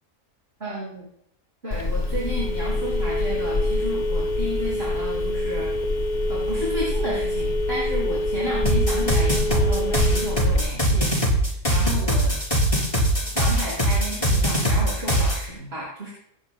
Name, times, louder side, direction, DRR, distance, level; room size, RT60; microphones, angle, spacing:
voice 1, 0.6-1.0 1.6-5.7 6.3-12.4 13.2-16.1, equal, 40° right, -5 dB, 5.6 m, -32 dB
Telephone, 1.7-10.7, left 1 dB, 40° left, 0.7 m, -25 dB
sound 1, 8.7-15.4, right 1 dB, 20° left, 4.3 m, -21 dB
25.5 x 13.0 x 2.2 m, 0.75 s
omnidirectional pair, 1.5 m